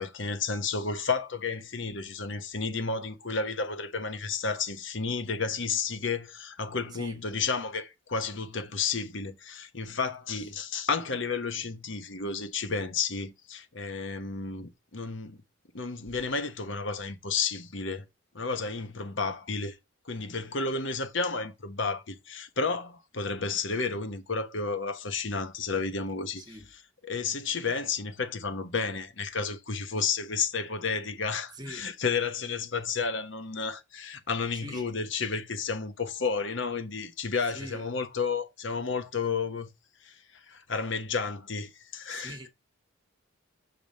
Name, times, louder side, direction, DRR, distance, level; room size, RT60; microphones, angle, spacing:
voice 1, 0.0-15.4 15.7-18.0 18.3-19.8 20.0-26.5 27.0-39.7 40.0-42.5, left 4 dB, 60° left, 1.2 m, -32 dB
voice 2, 26.4-26.7 31.5-31.9 34.5-34.9 37.5-37.9 42.0-42.5, right 1 dB, 20° right, 1.5 m, -44 dB
6.1 x 5.4 x 5.3 m
head